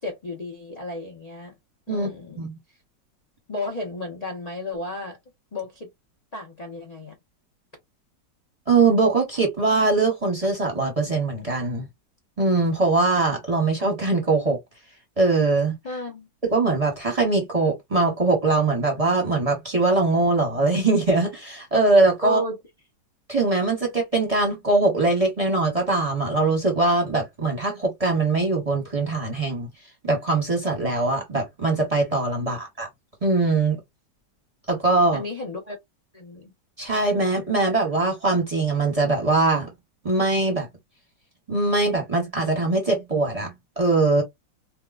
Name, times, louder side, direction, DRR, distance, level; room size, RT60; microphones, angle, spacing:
voice 1, 0.0-1.5 1.9-2.5 3.5-5.2 5.5-5.9 6.3-7.1 15.8-16.3 22.2-22.6 32.4-32.5 35.1-35.8 36.1-36.5, left 1 dB, 45° left, 0.5 m, -33 dB
voice 2, 8.7-11.9 12.4-14.6 15.2-15.8 16.4-22.4 23.3-29.7 30.0-32.9 33.2-33.8 34.7-35.2 36.8-39.7 40.0-40.7 41.5-44.2, right 3 dB, 25° right, 0.8 m, -22 dB
4.5 x 2.2 x 2.4 m
omnidirectional pair, 2.0 m